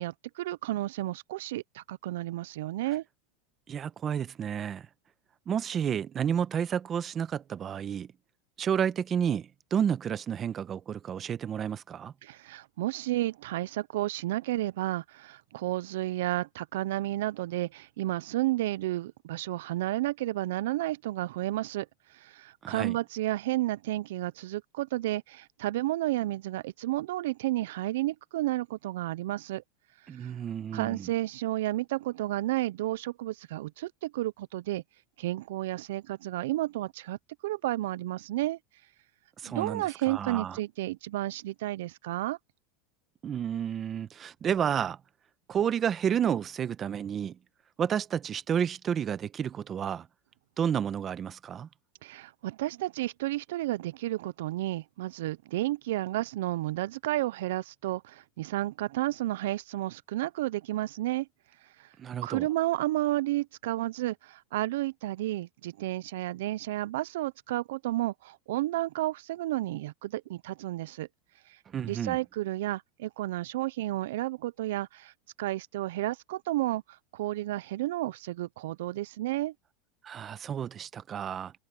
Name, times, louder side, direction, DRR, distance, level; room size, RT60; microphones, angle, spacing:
voice 1, 0.0-3.0 12.2-29.6 30.2-30.3 30.7-34.8 35.2-37.2 37.4-38.6 39.4-42.4 52.0-61.3 61.8-61.9 62.2-71.1 71.5-75.1 75.4-79.5, right 16 dB, 80° right, 0.4 m, -32 dB
voice 2, 3.7-4.9 5.5-8.1 8.6-12.1 22.6-23.0 30.1-31.1 39.4-40.6 43.2-45.0 45.5-47.4 47.8-50.1 50.6-51.7 62.0-62.5 71.7-72.2 80.0-81.5, right 8 dB, 25° right, 0.9 m, -31 dB
supercardioid pair, 150°, 0 cm